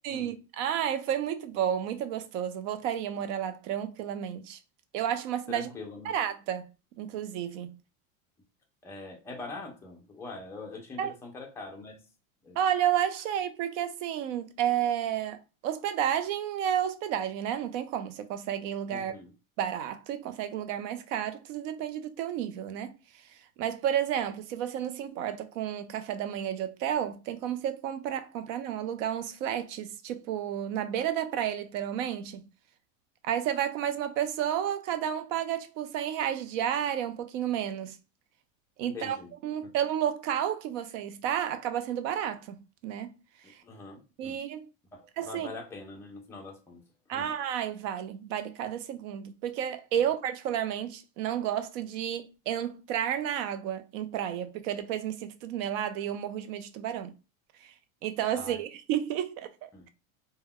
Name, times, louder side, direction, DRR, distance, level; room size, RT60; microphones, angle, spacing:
voice 1, 0.0-4.6 4.9-5.7 6.0-6.7 7.0-7.8 11.0-11.1 12.6-19.2 19.6-22.9 23.6-32.5 33.3-38.0 38.8-39.2 39.4-43.1 44.2-44.7 45.2-45.5 47.1-57.1 58.0-59.5, right 10 dB, 65° right, 0.6 m, -31 dB
voice 2, 5.5-6.1 8.8-12.0 12.4-12.6 18.9-19.3 38.8-39.3 43.6-44.4 44.9-46.8 47.1-47.3 49.9-50.0 58.3-58.6 59.7-59.9, left 3 dB, 5° left, 0.3 m, -43 dB
2.2 x 2.2 x 3.4 m
supercardioid pair, 140°, 42 cm